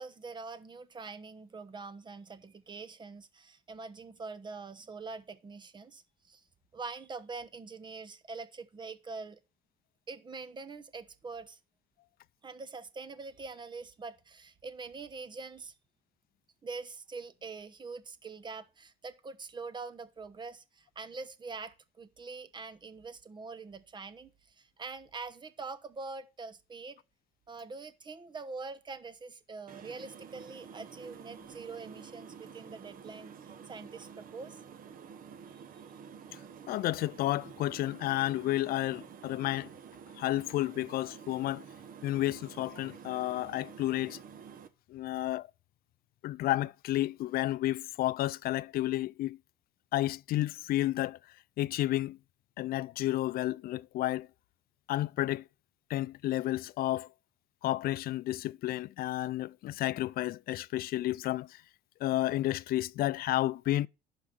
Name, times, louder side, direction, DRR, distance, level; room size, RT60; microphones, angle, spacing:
voice 1, 0.0-6.4 6.7-9.4 10.1-11.6 12.4-15.7 16.6-27.0 27.5-34.6, right 4 dB, 25° right, 1.1 m, -44 dB
sound 1, 29.7-44.7, right 7 dB, 55° right, 1.2 m, -50 dB
voice 2, 36.7-39.7 40.2-41.6 42.0-44.2 44.9-45.4 46.2-49.4 49.9-51.2 51.6-52.2 52.6-54.3 54.9-55.4 55.9-57.1 57.6-61.5 62.0-63.9, left 15 dB, 60° left, 0.4 m, -31 dB
11.5 x 4.8 x 6.0 m
cardioid pair, 110°, 17 cm